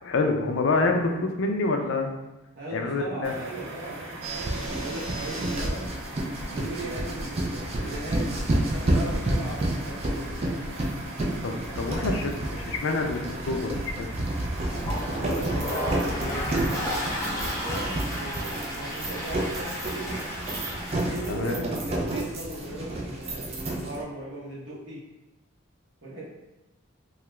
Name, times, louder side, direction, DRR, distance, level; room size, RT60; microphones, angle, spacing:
voice 1, 0.0-2.1 2.7-3.3 11.4-14.1 21.3-21.7, left 3 dB, 65° left, 4 dB, 0.4 m, -27 dB
voice 2, 2.5-5.8 6.5-8.3 8.7-10.3 11.6-11.9 15.1-16.2 16.5-16.8 17.4-20.3 20.9-25.0 26.0-26.2, right 1 dB, 60° right, -7 dB, 1.0 m, -38 dB
sound 1, 3.2-20.8, right 2 dB, 80° right, 0.7 m, -41 dB
sound 2, 4.2-24.0, right 1 dB, 30° right, 0.3 m, -30 dB
Toilet flush, 14.6-21.4, equal, 15° left, 0.6 m, -33 dB
2.8 x 2.3 x 3.1 m, 1.0 s
head